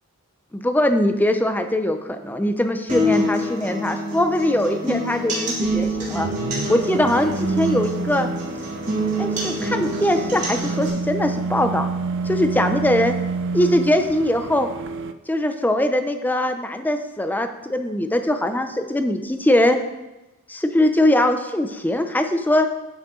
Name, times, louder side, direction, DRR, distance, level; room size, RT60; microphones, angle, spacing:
voice 1, 0.5-6.3 6.7-8.3 9.2-11.9 12.2-13.1 13.5-14.7 15.3-19.8 20.5-22.7, left 1 dB, 10° left, 7 dB, 0.6 m, -21 dB
sound 1, 2.9-10.9, equal, 35° right, 2.8 m, -26 dB
sound 2, 5.6-15.1, right 4 dB, 60° right, 0.5 m, -28 dB
11.5 x 6.6 x 3.8 m, 1.0 s
head